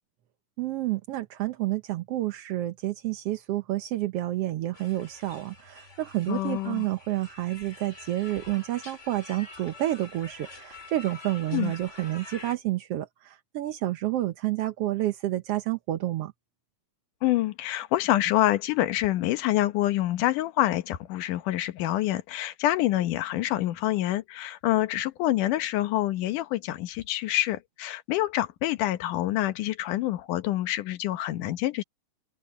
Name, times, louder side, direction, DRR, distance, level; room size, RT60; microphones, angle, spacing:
voice 1, 0.6-16.3, right 15 dB, 75° right, 1.4 m, -29 dB
sound 1, 4.7-12.6, left 3 dB, 20° left, 3.4 m, -47 dB
voice 2, 6.3-6.9 11.5-11.7 17.2-31.8, left 15 dB, 75° left, 2.5 m, -26 dB
omnidirectional pair, 3.9 m